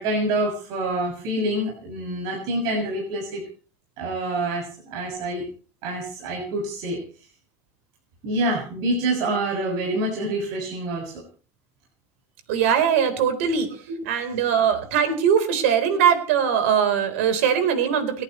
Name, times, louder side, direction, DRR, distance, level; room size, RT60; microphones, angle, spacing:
voice 1, 0.0-3.4 4.0-5.4 5.8-7.0 8.2-11.2 13.9-14.0, right 1 dB, 70° right, 0 dB, 6.8 m, -26 dB
voice 2, 12.5-13.7 14.0-18.2, right 8 dB, 90° right, 9 dB, 4.0 m, -21 dB
30.0 x 11.0 x 3.1 m, 0.38 s
supercardioid pair, 105°, 7 cm